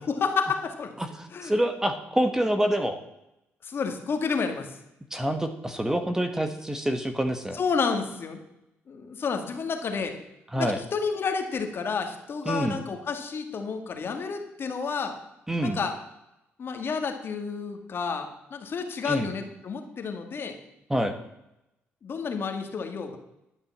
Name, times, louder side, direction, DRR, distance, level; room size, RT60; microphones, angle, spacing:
voice 1, 0.1-0.9 1.3-1.5 3.6-4.7 7.6-8.4 8.9-10.1 10.6-15.1 15.6-16.0 16.6-20.5 22.0-23.2, left 5 dB, 55° left, 6 dB, 2.0 m, -30 dB
voice 2, 1.0-3.0 5.1-7.6 10.5-10.8 12.4-12.8 15.5-15.8 19.0-19.3 20.9-21.1, right 1 dB, 10° right, 8 dB, 1.4 m, -26 dB
11.5 x 7.0 x 7.3 m, 0.88 s
cardioid pair, 75°, 5 cm